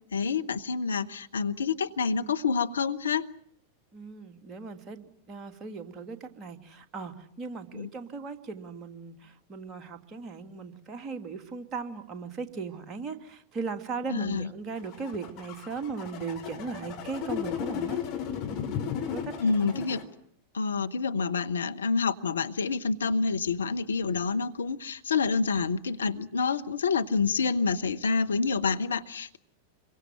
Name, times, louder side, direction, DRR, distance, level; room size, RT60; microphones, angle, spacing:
voice 1, 0.1-3.3 7.7-7.9 14.1-14.5 19.4-20.0 20.5-29.4, left 5 dB, 70° left, 10 dB, 1.0 m, -28 dB
voice 2, 3.9-18.0 19.0-19.7, right 4 dB, 25° right, 6 dB, 2.8 m, -38 dB
sound 1, 14.8-20.0, left 8 dB, 40° left, 5.9 m, -35 dB
27.0 x 23.5 x 7.8 m, 0.65 s
figure-of-eight pair, 90°, 0 cm